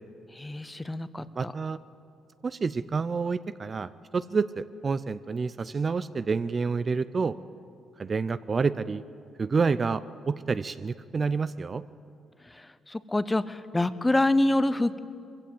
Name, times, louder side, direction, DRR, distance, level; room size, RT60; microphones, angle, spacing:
voice 1, 0.4-1.5 12.9-15.0, left 1 dB, 15° left, 14 dB, 0.8 m, -26 dB
voice 2, 1.4-1.8 2.4-7.4 8.0-9.0 9.4-11.8, right 4 dB, 35° right, 14 dB, 0.5 m, -28 dB
22.0 x 15.5 x 7.7 m, 2.5 s
cardioid pair, 90°, 0 cm